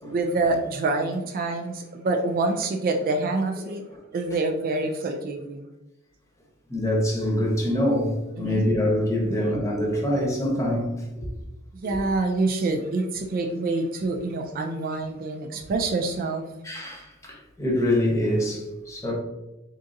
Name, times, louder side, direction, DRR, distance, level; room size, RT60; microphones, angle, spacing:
voice 1, 0.1-3.8 4.1-5.7 8.4-8.7 9.3-9.4 11.7-16.5, right 3 dB, 45° right, 0.3 m, -26 dB
voice 2, 6.7-10.9 16.6-19.1, left 1 dB, 15° left, 0.9 m, -25 dB
3.8 x 3.8 x 2.6 m
head